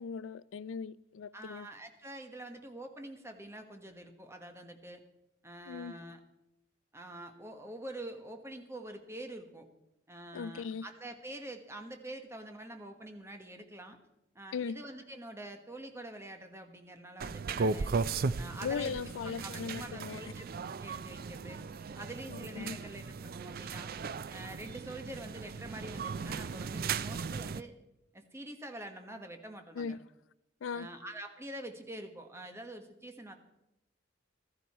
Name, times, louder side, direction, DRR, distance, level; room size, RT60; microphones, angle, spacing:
voice 1, 0.0-1.7 5.7-6.0 10.3-10.9 14.5-14.8 18.6-20.2 22.3-22.8 29.8-30.0 30.6-30.9, left 6 dB, 90° left, 0.4 m, -38 dB
voice 2, 1.3-5.0 5.4-6.2 6.9-9.7 10.1-14.0 14.3-18.0 18.4-19.0 19.4-21.6 21.9-23.9 24.3-27.7 28.1-30.0 30.7-33.4, right 1 dB, 15° right, 1.3 m, -46 dB
sound 1, 17.2-27.6, right 4 dB, 50° right, 0.4 m, -37 dB
15.0 x 13.5 x 4.2 m
head